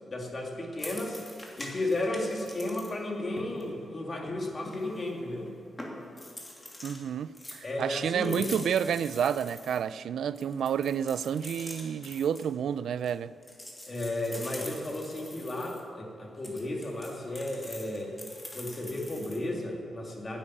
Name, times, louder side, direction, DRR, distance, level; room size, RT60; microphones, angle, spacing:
voice 1, 0.1-1.2 1.6-5.5 7.6-8.5 13.9-18.1 18.5-20.4, left 1 dB, 35° left, 2.5 m, -34 dB
sound 1, 0.8-2.9 3.2-5.2 5.5-5.6 5.8-7.0 7.3-9.8 10.4-13.2 13.4-15.8 16.4-19.4, left 1 dB, 15° left, 2.7 m, -45 dB
voice 2, 6.8-13.3, right 8 dB, 80° right, 0.3 m, -30 dB
12.0 x 8.7 x 9.8 m
cardioid pair, 105°, 0 cm